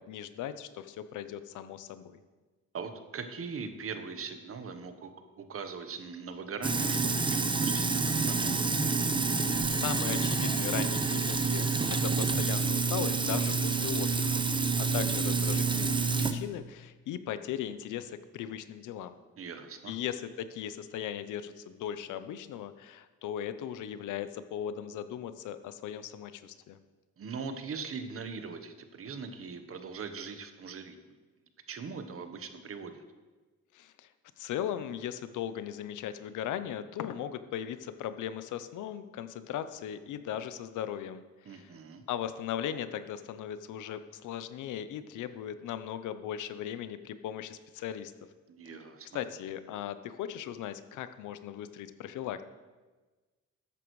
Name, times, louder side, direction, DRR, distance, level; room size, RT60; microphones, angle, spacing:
voice 1, 0.0-2.2 9.4-11.7 12.0-14.3 14.8-19.1 19.9-26.8 33.7-34.1 34.4-41.2 41.5-41.7 42.1-48.1 49.1-52.4, left 10 dB, 80° left, 12 dB, 0.7 m, -38 dB
voice 2, 2.7-5.1 5.4-8.6 19.4-20.0 27.2-31.0 31.7-33.0 41.4-42.0 48.5-49.2, right 5 dB, 50° right, 8 dB, 1.1 m, -41 dB
Sink (filling or washing), 6.6-16.3, right 4 dB, 15° right, 0.7 m, -28 dB
13.0 x 8.7 x 3.2 m, 1.3 s
cardioid pair, 90°, 30 cm